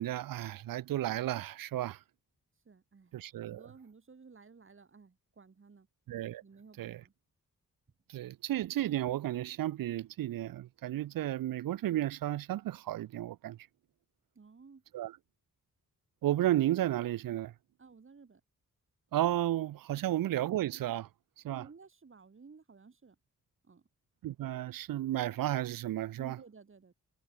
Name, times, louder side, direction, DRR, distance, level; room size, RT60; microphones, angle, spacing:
voice 1, 0.0-2.0 3.1-3.6 6.1-6.4 6.8-7.0 8.1-13.6 14.9-15.2 16.2-17.5 19.1-21.1 21.4-21.7 24.2-26.4, right 13 dB, 90° right, 0.6 m, -33 dB
voice 2, 2.7-3.2 3.5-5.9 6.4-7.1 14.4-14.8 17.8-18.4 21.5-23.2 23.6-23.8 26.2-26.9, right 4 dB, 40° right, 1.9 m, -55 dB
cardioid pair, 70°, 33 cm